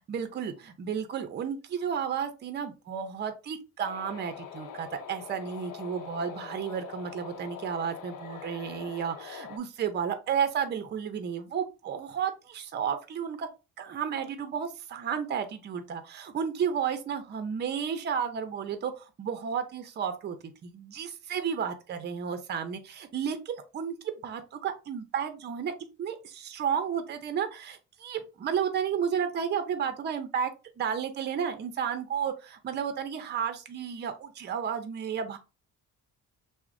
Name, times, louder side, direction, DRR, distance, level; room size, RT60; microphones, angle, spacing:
voice 1, 0.1-13.5 13.8-20.4 20.6-24.0 24.2-25.7 26.0-30.5 30.8-35.4, right 7 dB, 35° right, 8 dB, 0.5 m, -32 dB
sound 1, 3.8-9.6, left 8 dB, 85° left, 0.7 m, -43 dB
5.9 x 2.1 x 2.5 m, 0.29 s
cardioid pair, 160°, 32 cm